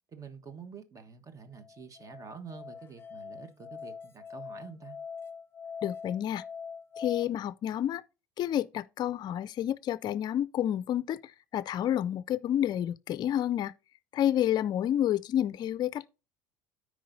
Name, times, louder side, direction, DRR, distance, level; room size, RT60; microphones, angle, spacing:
voice 1, 0.1-5.0, right 6 dB, 35° right, 1.3 m, -47 dB
Musical instrument, 1.6-7.2, left 6 dB, 25° left, 0.8 m, -43 dB
voice 2, 5.8-6.4 7.0-8.0 8.4-13.7 14.1-16.1, left 11 dB, 45° left, 0.4 m, -29 dB
13.0 x 4.9 x 2.7 m
hypercardioid pair, 75°, 10 cm